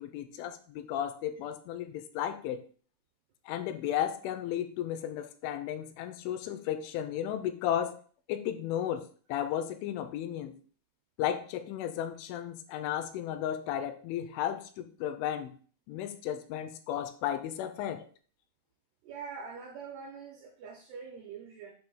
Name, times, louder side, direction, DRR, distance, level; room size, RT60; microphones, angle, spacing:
voice 1, 0.0-2.6 3.5-8.0 8.3-10.6 11.2-15.5 15.9-18.1, left 10 dB, 80° left, 9 dB, 3.0 m, -34 dB
voice 2, 19.0-21.7, right 6 dB, 85° right, 3 dB, 2.3 m, -44 dB
7.6 x 2.8 x 5.4 m, 0.43 s
omnidirectional pair, 5.6 m